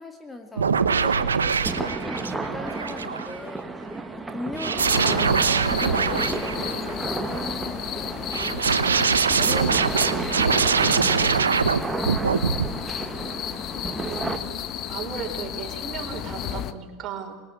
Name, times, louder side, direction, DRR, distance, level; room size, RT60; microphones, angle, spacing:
voice 1, 0.0-3.7 4.2-9.0 9.4-11.5, left 2 dB, 15° left, 6 dB, 2.3 m, -40 dB
sound 1, 0.6-3.4 4.6-6.9 8.3-11.8 12.1-12.7, right 5 dB, 90° right, 1.0 m, -23 dB
sound 2, 1.6-14.4, right 3 dB, 15° right, 2.0 m, -32 dB
sound 3, 4.8-16.7, left 10 dB, 45° left, 1.3 m, -33 dB
voice 2, 14.0-14.6 14.9-17.3, right 7 dB, 40° right, 3 dB, 4.4 m, -36 dB
20.5 x 19.5 x 9.0 m, 1.2 s
hypercardioid pair, 90°, 0 cm